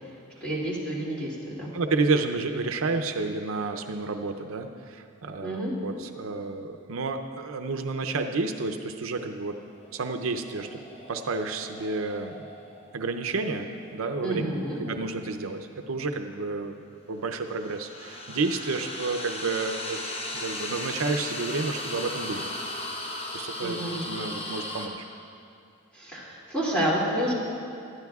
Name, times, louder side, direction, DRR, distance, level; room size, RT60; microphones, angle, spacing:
voice 1, 0.4-1.8 5.4-5.7 14.2-14.8 23.6-24.1 25.9-27.3, right 1 dB, 5° left, -7 dB, 2.6 m, -29 dB
voice 2, 1.7-9.6 9.9-10.8 11.1-12.5 12.9-14.4 14.8-16.7 17.1-20.0 20.3-22.5 23.3-23.8 24.1-24.9, right 3 dB, 75° right, 6 dB, 0.6 m, -30 dB
sound 1, 9.7-14.9 17.3-24.9, left 1 dB, 30° left, 1.0 m, -37 dB
19.5 x 12.5 x 2.4 m, 2.5 s
head